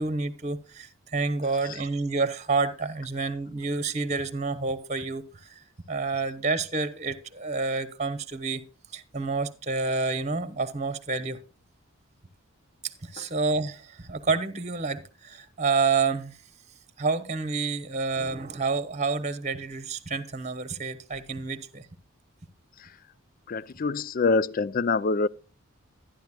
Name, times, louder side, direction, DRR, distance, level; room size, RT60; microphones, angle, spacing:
voice 1, 0.0-5.6 5.9-8.6 8.9-11.4 12.8-16.4 17.0-21.9, right 4 dB, 30° right, 1.0 m, -29 dB
voice 2, 23.5-25.3, left 4 dB, 40° left, 0.4 m, -25 dB
13.5 x 10.5 x 2.3 m
head